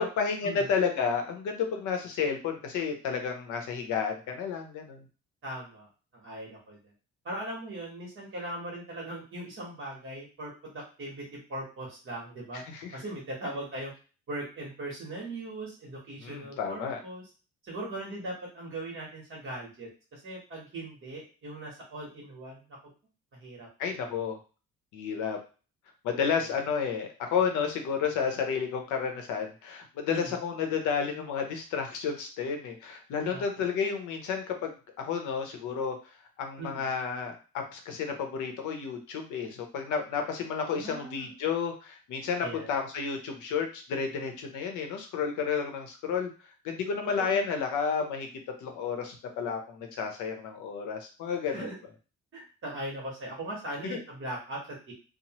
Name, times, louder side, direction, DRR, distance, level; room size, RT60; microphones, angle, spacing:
voice 1, 0.2-5.0 12.5-13.0 16.2-17.0 23.8-24.4 24.9-25.4 26.0-35.9 36.4-46.3 46.6-48.3 48.6-51.7 53.8-54.0, left 6 dB, 80° left, 4 dB, 0.8 m, -31 dB
voice 2, 5.4-6.9 7.2-12.6 12.9-13.9 14.3-17.2 17.6-22.8 23.3-24.0 26.4-26.5 30.1-30.3 33.2-33.7 36.6-36.9 40.7-41.3 42.4-42.7 47.0-47.4 51.5-51.8 52.3-54.9, right 1 dB, 45° right, -4 dB, 1.2 m, -39 dB
3.0 x 2.0 x 2.9 m, 0.35 s
cardioid pair, 130°, 30 cm